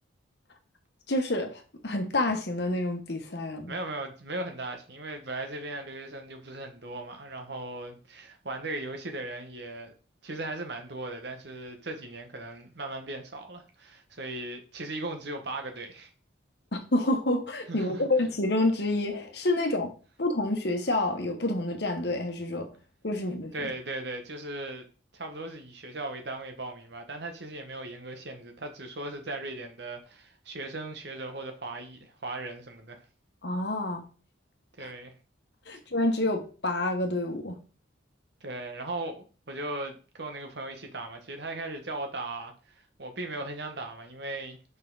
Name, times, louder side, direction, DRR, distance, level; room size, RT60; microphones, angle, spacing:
voice 1, 1.1-3.8 16.7-19.9 20.2-22.7 23.0-23.7 33.4-34.0 34.8-34.9 35.7-37.6, left 2 dB, 60° left, 1.2 m, -28 dB
voice 2, 3.7-9.9 10.2-16.1 17.7-18.1 23.5-24.8 25.1-33.0 34.8-35.1 38.4-42.5 43.0-44.6, right 2 dB, 60° right, 1.3 m, -38 dB
5.6 x 5.4 x 4.0 m
head